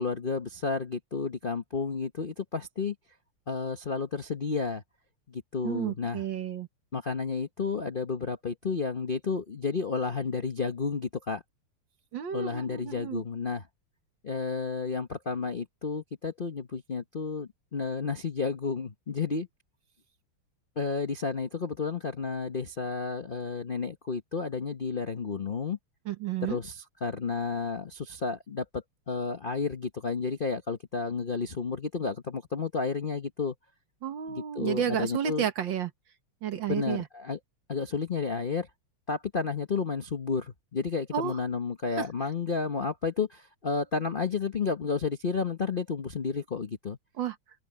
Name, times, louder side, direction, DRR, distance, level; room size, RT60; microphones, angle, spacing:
voice 1, 0.0-2.9 3.5-4.8 5.3-6.2 6.9-11.4 12.3-13.7 14.2-19.5 20.8-25.8 26.4-33.5 34.3-35.5 36.7-37.4 37.7-38.7 39.1-47.0, left 5 dB, 45° left, 0.7 m, -31 dB
voice 2, 5.6-6.7 12.1-13.2 26.1-26.6 34.0-35.9 36.4-37.1 41.1-41.4 42.0-42.1 47.2-47.4, right 9 dB, 60° right, 1.8 m, -31 dB
open air
omnidirectional pair, 2.4 m